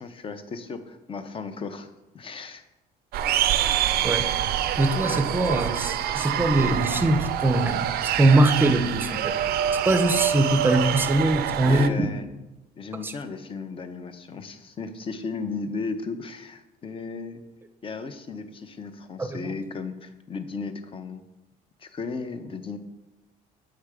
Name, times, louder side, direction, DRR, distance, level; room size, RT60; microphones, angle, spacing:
voice 1, 0.0-1.9 2.1-2.6 5.0-5.3 11.5-12.3 12.8-17.4 17.8-21.2 21.8-22.8, left 4 dB, 30° left, 10 dB, 0.6 m, -35 dB
sound 1, 3.1-11.9, right 10 dB, 65° right, 0.4 m, -26 dB
voice 2, 4.8-7.9 8.2-9.4 9.9-12.0 13.0-13.1 19.2-19.5, right 2 dB, 10° right, 10 dB, 0.5 m, -22 dB
7.5 x 3.4 x 4.8 m, 1.0 s
cardioid pair, 110°, 17 cm